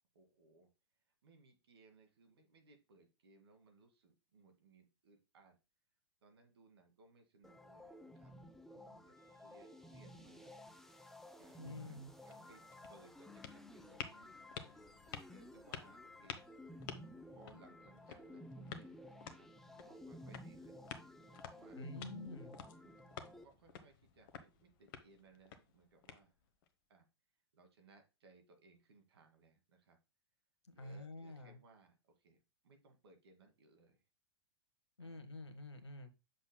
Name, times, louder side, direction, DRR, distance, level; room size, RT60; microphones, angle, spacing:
voice 1, 0.1-0.7 1.1-5.6 6.2-8.4 8.6-10.6 11.4-12.0 12.2-12.6 12.9-14.5 15.3-16.5 17.3-19.5 19.8-20.9 21.2-21.8 22.6-26.4 26.9-27.1 27.5-30.0 30.7-32.4 32.6-34.0 35.0-35.5, right 3 dB, 65° right, 2.1 m, -65 dB
sound 1, 7.4-23.4, left 1 dB, ahead, 0.7 m, -55 dB
Wind instrument woodwind instrument, 8.1-13.2, right 7 dB, 20° right, 2.4 m, -75 dB
voice 2, 11.6-12.1 21.7-22.6 30.7-31.6 35.0-36.1, left 2 dB, 80° left, 1.3 m, -48 dB
sound 2, 12.3-26.7, left 8 dB, 50° left, 1.1 m, -53 dB
7.6 x 6.5 x 2.2 m
figure-of-eight pair, 105°, 14 cm